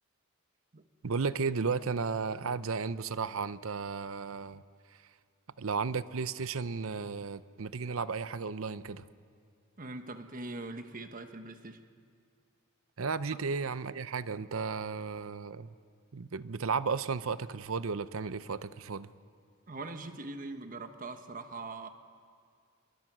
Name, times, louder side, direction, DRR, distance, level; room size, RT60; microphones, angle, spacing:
voice 1, 1.0-4.6 5.6-9.0 13.0-15.7 16.1-19.1, right 5 dB, 70° right, 15 dB, 0.7 m, -34 dB
voice 2, 9.8-11.8 19.7-21.9, right 2 dB, 40° right, 7 dB, 1.2 m, -42 dB
28.0 x 23.0 x 6.2 m, 2.2 s
head